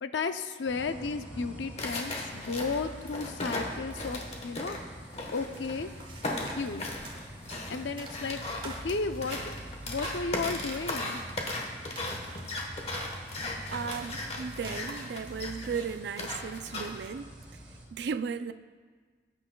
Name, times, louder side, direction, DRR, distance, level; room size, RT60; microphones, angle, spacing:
voice 1, 0.0-4.8 5.3-5.9 6.6-6.8 7.7-9.4 9.9-11.2, left 4 dB, 75° left, 9 dB, 0.6 m, -33 dB
sound 1, 0.6-17.8, equal, 10° right, 2.3 m, -45 dB
sound 2, 1.8-5.8 6.2-17.1, left 2 dB, 35° left, 1.1 m, -37 dB
sound 3, 5.2-15.4, right 2 dB, 25° right, 1.2 m, -48 dB
voice 2, 13.7-17.3 17.9-18.5, right 6 dB, 65° right, 12 dB, 0.3 m, -35 dB
18.5 x 8.7 x 2.3 m, 1.5 s
head